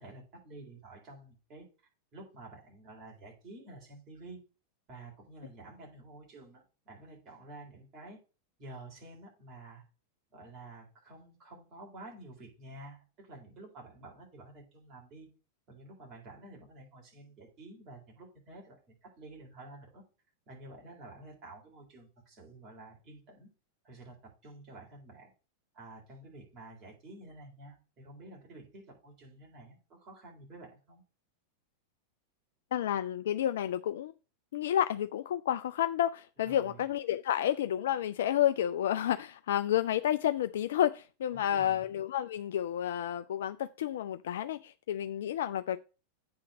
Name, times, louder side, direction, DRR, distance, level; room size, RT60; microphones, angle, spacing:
voice 1, 0.0-1.7 2.1-4.4 4.9-8.2 8.6-9.8 10.3-15.3 15.7-20.0 20.5-23.5 23.8-25.3 25.7-31.0 36.5-36.8 41.3-41.8, right 2 dB, 35° right, 3.7 m, -50 dB
voice 2, 32.7-34.1 34.5-45.8, left 11 dB, 60° left, 0.3 m, -30 dB
8.6 x 3.8 x 6.0 m
figure-of-eight pair, 90°, 0 cm